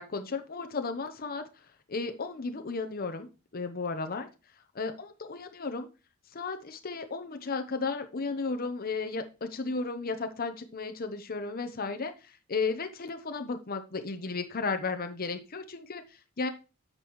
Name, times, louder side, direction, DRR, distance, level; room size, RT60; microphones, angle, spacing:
voice 1, 0.0-3.3 3.5-4.3 4.7-5.9 6.3-16.5, left 4 dB, 45° left, 7 dB, 0.9 m, -34 dB
9.1 x 6.8 x 3.1 m, 0.30 s
head